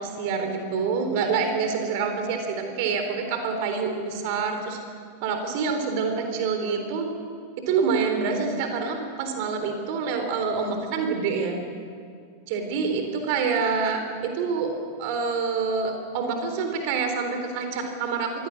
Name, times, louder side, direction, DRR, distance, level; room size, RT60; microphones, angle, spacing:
voice 1, 0.0-4.8 5.2-7.1 7.6-11.6 12.5-18.5, right 5 dB, 45° right, 5 dB, 3.7 m, -27 dB
23.5 x 16.5 x 8.6 m, 2.2 s
figure-of-eight pair, 90°, 0 cm